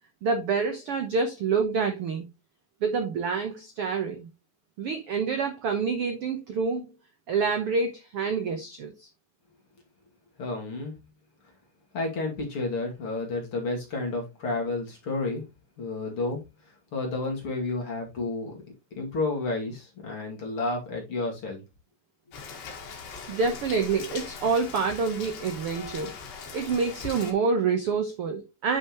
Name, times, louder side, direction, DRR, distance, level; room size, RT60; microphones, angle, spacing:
voice 1, 0.2-2.3 2.8-4.3 4.8-6.9 7.3-9.1 23.3-28.8, right 5 dB, 75° right, 1.3 m, -27 dB
voice 2, 10.4-11.0 11.9-15.4 15.8-16.4 16.9-18.6 18.9-21.6, left 3 dB, 40° left, 2.9 m, -31 dB
Rain, 22.3-27.3, left 5 dB, 90° left, 3.7 m, -40 dB
9.6 x 5.9 x 3.0 m
omnidirectional pair, 4.1 m